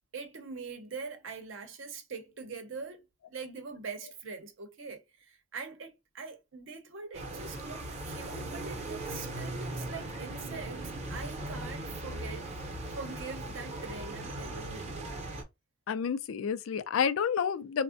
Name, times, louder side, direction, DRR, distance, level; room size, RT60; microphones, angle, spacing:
voice 1, 0.1-10.8 11.1-12.5 12.9-15.0, right 4 dB, 70° right, 0.7 m, -43 dB
sound 1, 7.1-15.4, right 1 dB, 35° right, 0.7 m, -39 dB
voice 2, 15.9-17.8, left 7 dB, 85° left, 0.4 m, -29 dB
3.4 x 2.1 x 2.5 m
head